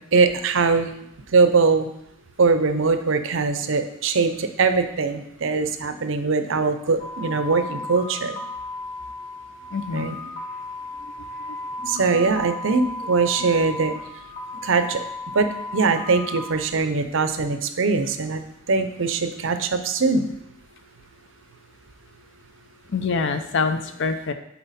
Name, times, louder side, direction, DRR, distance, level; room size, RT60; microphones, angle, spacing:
voice 1, 0.1-0.9 1.3-1.9 2.4-8.4 9.9-10.1 11.9-13.9 14.6-15.0 15.3-15.5 15.7-18.4 18.7-20.2, right 4 dB, 65° right, 9 dB, 0.6 m, -21 dB
sound 1, 7.0-16.5, left 2 dB, 40° left, 1.2 m, -35 dB
voice 2, 9.7-10.2 11.0-12.2 13.4-13.5 22.9-24.3, left 4 dB, 60° left, 9 dB, 0.6 m, -27 dB
7.1 x 4.4 x 4.2 m, 0.77 s
head